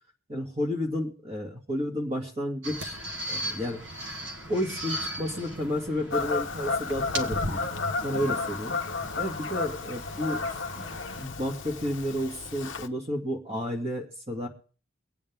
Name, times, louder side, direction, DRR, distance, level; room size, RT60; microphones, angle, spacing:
voice 1, 0.3-3.0 3.3-3.8 4.5-8.7 9.2-10.5 10.8-10.9 11.2-14.5, equal, 30° right, 1 dB, 2.4 m, -31 dB
sound 1, 2.6-11.3, right 1 dB, 60° right, 1.5 m, -38 dB
Fowl / Bird vocalization bird call bird song, 6.1-12.9, left 4 dB, 60° left, 0.8 m, -32 dB
24.5 x 8.6 x 3.7 m, 0.40 s
head